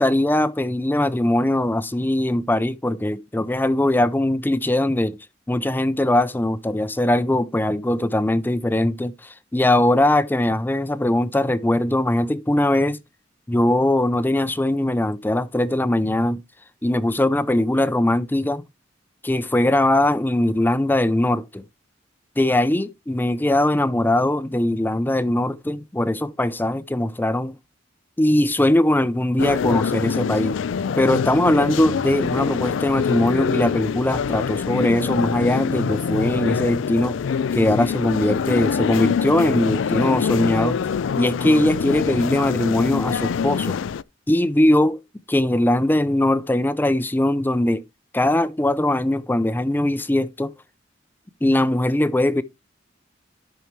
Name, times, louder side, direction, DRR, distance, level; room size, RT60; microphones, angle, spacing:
voice 1, 0.0-5.2 5.5-13.0 13.5-16.4 16.8-18.6 19.2-21.6 22.4-27.5 28.2-30.6 31.0-37.2 37.5-40.8 41.2-43.8 44.3-45.0 45.3-47.8 48.1-50.5 51.4-52.4, left 1 dB, 10° left, 0.5 m, -20 dB
sound 1, 29.4-44.0, left 6 dB, 70° left, 0.4 m, -24 dB
12.5 x 5.6 x 3.1 m
head